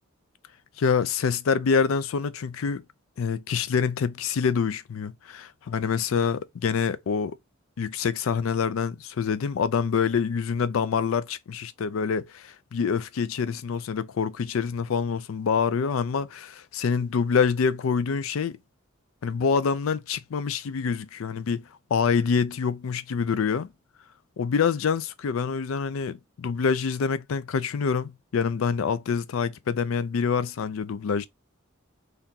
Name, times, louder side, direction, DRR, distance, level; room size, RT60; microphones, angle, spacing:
voice 1, 0.8-2.8 3.2-7.4 7.8-18.6 19.2-23.7 24.4-31.3, left 6 dB, 75° left, 0.4 m, -26 dB
2.8 x 2.6 x 3.7 m
head